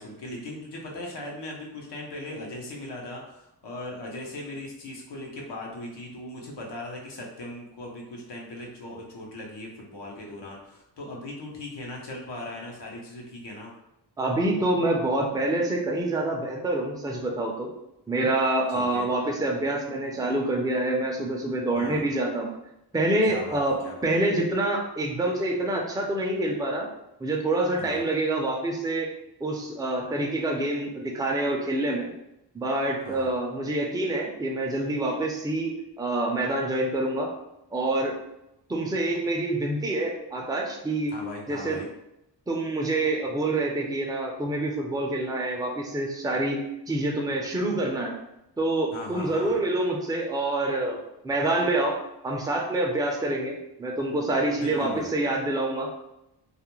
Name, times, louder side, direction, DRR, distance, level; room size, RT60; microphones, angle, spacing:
voice 1, 0.0-13.7 18.7-19.1 21.7-22.0 23.2-24.1 27.8-28.1 33.0-33.3 41.1-41.9 48.9-49.6 54.6-55.1, left 1 dB, 75° left, -1 dB, 0.8 m, -39 dB
voice 2, 14.2-17.7 18.1-22.5 22.9-23.7 24.0-26.9 27.2-29.1 29.4-32.1 32.5-37.3 37.7-38.1 38.7-41.1 41.5-41.8 42.5-46.6 46.9-48.1 48.6-51.0 51.2-51.9 52.2-55.9, right 2 dB, 10° right, 0 dB, 0.4 m, -26 dB
2.4 x 2.1 x 3.0 m, 0.87 s
cardioid pair, 70°, 42 cm